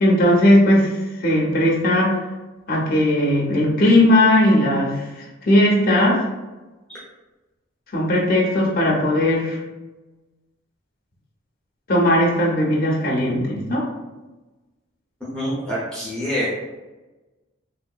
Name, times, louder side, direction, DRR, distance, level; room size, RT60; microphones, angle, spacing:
voice 1, 0.0-2.2 2.7-5.1 5.4-6.2 7.9-9.6 11.9-13.9, left 1 dB, 45° left, -3 dB, 0.6 m, -17 dB
voice 2, 15.3-16.5, equal, 5° left, -9 dB, 0.7 m, -26 dB
3.1 x 2.7 x 2.3 m, 1.1 s
head